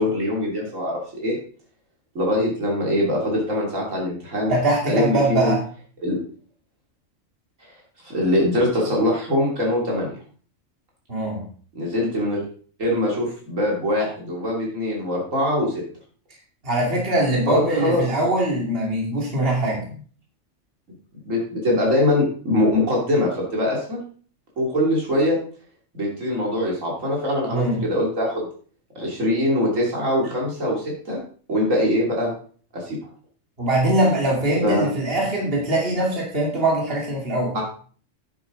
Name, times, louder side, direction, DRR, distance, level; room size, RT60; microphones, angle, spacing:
voice 1, 0.0-1.3 2.1-4.5 4.9-5.6 6.0-6.2 8.0-10.1 11.7-12.4 12.8-15.8 17.5-18.0 21.2-24.0 24.6-25.4 25.9-28.5 28.9-31.2 31.5-32.3 32.7-33.0 34.6-34.8 37.5-37.6, left 1 dB, 80° right, -2 dB, 3.2 m, -22 dB
voice 2, 4.5-5.6 11.1-11.5 16.6-19.9 27.5-27.9 33.6-37.5, right 1 dB, 45° right, -2 dB, 2.8 m, -22 dB
9.6 x 8.1 x 3.9 m, 0.44 s
omnidirectional pair, 1.3 m